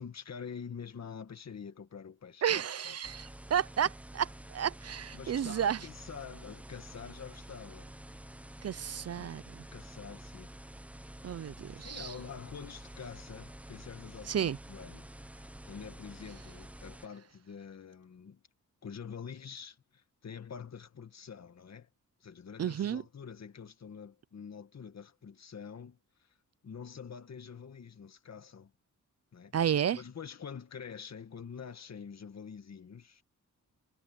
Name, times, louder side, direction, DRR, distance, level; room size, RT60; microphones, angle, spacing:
voice 1, 0.0-3.0 5.1-7.9 9.2-9.3 9.7-10.5 11.8-18.4 18.8-21.9 22.2-26.3 26.6-28.7 29.3-29.5 29.9-33.2, left 6 dB, 55° left, 1.9 m, -46 dB
voice 2, 2.4-3.9 4.1-5.9 8.6-9.4 11.2-12.1 14.3-14.6 22.6-23.0 29.5-30.0, right 9 dB, 50° right, 0.5 m, -31 dB
sound 1, 3.0-17.1, right 1 dB, 5° right, 0.7 m, -49 dB
wide cardioid pair, 120°, 32 cm